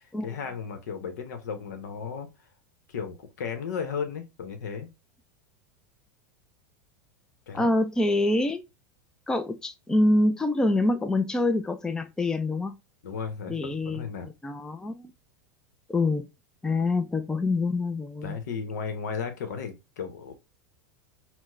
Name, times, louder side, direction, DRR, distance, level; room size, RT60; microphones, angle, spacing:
voice 1, 0.2-2.3 2.9-4.9 7.5-7.8 13.0-14.3 18.2-20.3, left 6 dB, 80° left, 0.9 m, -34 dB
voice 2, 7.5-8.6 9.3-12.8 13.5-14.0 14.4-15.1 15.9-16.3 16.6-18.4, left 2 dB, 5° left, 0.3 m, -25 dB
4.4 x 2.1 x 2.5 m
hypercardioid pair, 110°, 9 cm